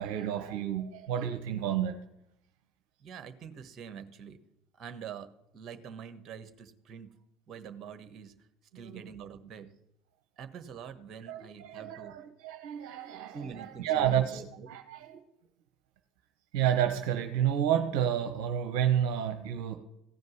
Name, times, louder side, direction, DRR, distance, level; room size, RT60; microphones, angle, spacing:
voice 1, 0.0-2.0 8.7-9.1 11.2-15.2 16.5-19.7, right 10 dB, 65° right, 0.9 m, -30 dB
voice 2, 3.0-4.4 4.8-5.3 5.5-7.1 7.5-8.3 8.7-9.7 10.4-12.1 13.3-14.7, right 7 dB, 40° right, 1.3 m, -45 dB
15.5 x 5.2 x 9.4 m
figure-of-eight pair, 65°, 0 cm